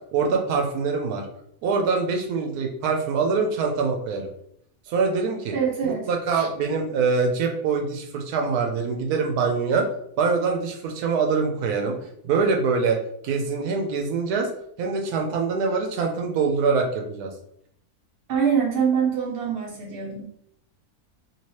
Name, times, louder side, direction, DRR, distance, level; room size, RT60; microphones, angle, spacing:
voice 1, 0.1-1.3 1.6-4.3 4.9-5.5 5.8-9.9 10.2-12.0 12.2-13.0 13.2-14.5 14.8-17.3, right 4 dB, 80° right, 2 dB, 1.1 m, -24 dB
voice 2, 5.5-6.5 18.3-20.2, right 7 dB, 55° right, -3 dB, 0.8 m, -25 dB
3.1 x 2.8 x 3.0 m, 0.71 s
omnidirectional pair, 1.6 m